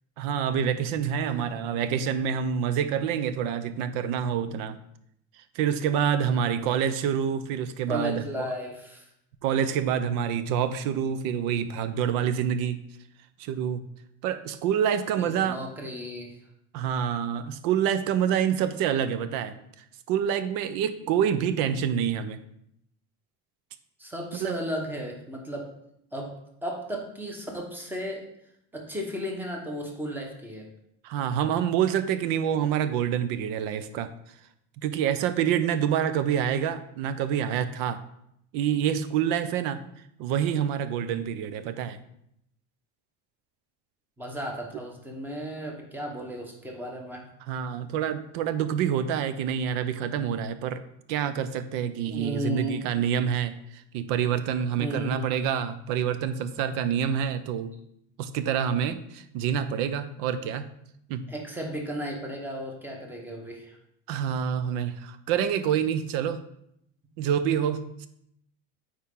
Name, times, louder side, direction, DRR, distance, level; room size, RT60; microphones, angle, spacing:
voice 1, 0.2-4.8 5.5-8.2 9.4-12.8 13.4-13.8 14.2-15.6 16.7-19.6 20.1-22.4 24.3-24.5 31.0-34.1 34.8-38.0 38.5-39.8 40.2-42.0 47.5-50.8 51.1-57.7 58.2-60.7 61.1-61.3 64.1-66.4 67.2-68.1, right 8 dB, 60° right, 12 dB, 0.6 m, -27 dB
voice 2, 7.9-9.0 12.0-12.1 15.2-16.4 21.0-21.1 24.0-25.7 26.1-26.3 26.6-28.2 28.7-30.7 44.2-47.3 52.1-52.8 54.8-55.3 61.3-63.8, equal, 5° right, 1 dB, 0.9 m, -34 dB
8.8 x 4.4 x 3.7 m, 0.75 s
cardioid pair, 165°, 37 cm